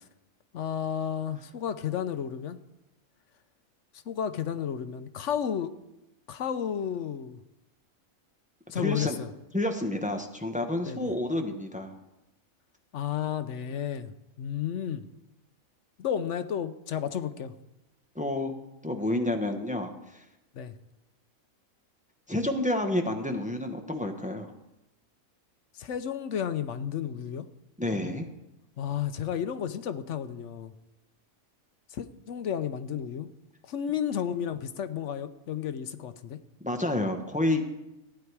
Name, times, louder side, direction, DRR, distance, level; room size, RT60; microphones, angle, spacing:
voice 1, 0.5-2.6 4.1-5.7 6.3-7.4 8.7-9.3 10.9-11.1 12.9-15.0 16.0-17.5 20.5-20.7 25.7-27.5 28.8-30.7 31.9-33.3 33.6-36.4, left 9 dB, 65° left, 11 dB, 0.9 m, -32 dB
voice 2, 8.7-9.2 9.5-12.0 18.1-18.5 18.8-20.2 22.3-24.5 27.8-28.3 36.6-37.8, left 1 dB, 5° right, 4 dB, 0.9 m, -29 dB
15.0 x 9.7 x 4.7 m, 0.95 s
omnidirectional pair, 1.4 m